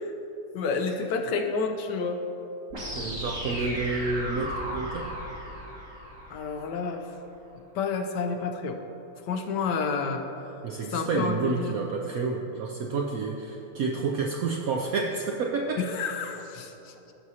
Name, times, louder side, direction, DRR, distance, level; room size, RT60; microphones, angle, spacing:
voice 1, 0.5-2.2 6.3-7.1 7.7-8.8 9.3-10.2 10.9-11.8 15.8-17.1, left 5 dB, 70° left, 5 dB, 1.2 m, -30 dB
sound 1, 2.7-6.7, equal, 45° right, 2.7 m, -35 dB
voice 2, 2.9-5.1 10.6-15.8, right 4 dB, 80° right, 1 dB, 0.8 m, -29 dB
15.5 x 6.1 x 2.8 m, 2.9 s
omnidirectional pair, 2.1 m